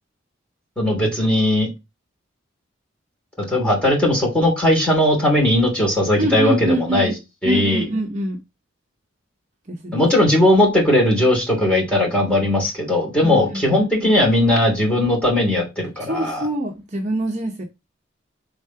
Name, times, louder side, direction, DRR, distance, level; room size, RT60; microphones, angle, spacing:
voice 1, 0.8-1.7 3.5-7.1 7.4-7.8 9.9-16.5, left 1 dB, 5° left, 2.8 m, -18 dB
voice 2, 6.2-7.2 7.4-8.4 9.7-10.1 13.2-13.4 13.7-14.1 16.0-17.6, equal, 35° right, 0.8 m, -24 dB
5.2 x 3.7 x 5.6 m
head